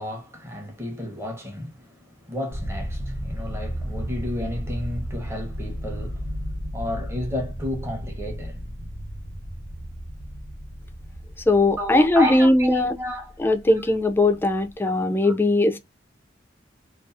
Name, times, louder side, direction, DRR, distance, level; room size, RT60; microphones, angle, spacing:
voice 1, 0.0-8.7 11.8-13.5 14.9-15.0 15.2-15.3, left 1 dB, 15° right, 0.7 m, -32 dB
sound 1, 2.5-14.7, equal, 70° right, 0.8 m, -34 dB
voice 2, 11.5-12.9 13.4-15.8, left 2 dB, 10° left, 0.3 m, -19 dB
2.5 x 2.3 x 2.4 m
head